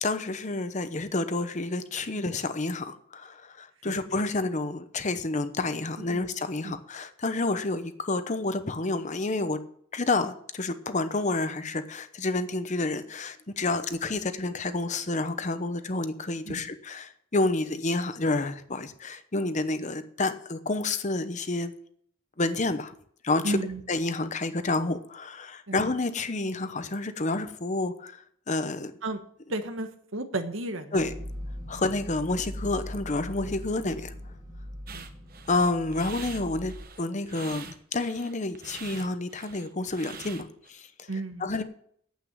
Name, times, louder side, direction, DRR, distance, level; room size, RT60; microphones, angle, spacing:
voice 1, 0.0-9.6 9.9-21.7 22.4-22.9 23.2-23.6 23.9-28.2 28.5-28.9 30.9-31.1 31.7-34.1 35.5-41.1 41.4-41.6, left 2 dB, 40° left, 11 dB, 0.9 m, -29 dB
voice 2, 6.0-6.3 6.6-6.8 16.4-16.7 23.4-23.8 25.7-25.8 29.0-29.2 29.5-31.0 31.7-31.8 34.9-35.1 41.1-41.5, right 2 dB, 85° right, 8 dB, 1.3 m, -33 dB
sound 1, 31.0-36.8, equal, 20° right, 2.4 m, -40 dB
sound 2, 34.9-40.7, right 6 dB, 50° right, 1.1 m, -45 dB
9.2 x 8.6 x 7.4 m, 0.63 s
head